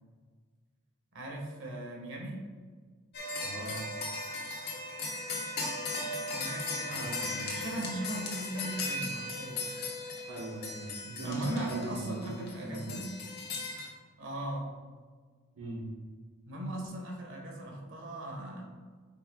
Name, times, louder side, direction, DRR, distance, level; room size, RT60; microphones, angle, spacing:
voice 1, 1.1-2.4 6.4-9.7 11.2-13.1 14.2-14.7 16.5-18.6, right 1 dB, 60° right, -1 dB, 1.6 m, -38 dB
sound 1, 3.1-13.9, left 2 dB, 45° left, 1.4 m, -37 dB
voice 2, 3.4-3.8 6.9-7.5 10.3-13.0 15.6-15.9, right 2 dB, 80° right, -4 dB, 1.3 m, -39 dB
8.9 x 5.5 x 2.4 m, 1.5 s
head